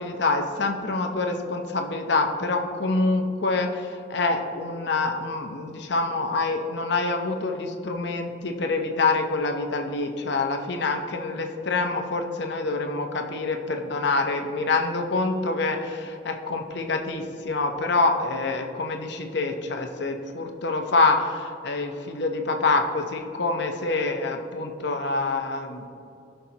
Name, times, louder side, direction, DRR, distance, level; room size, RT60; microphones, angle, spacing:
voice 1, 0.0-25.9, left 3 dB, 65° left, 4 dB, 0.8 m, -26 dB
16.5 x 5.7 x 2.9 m, 2.6 s
head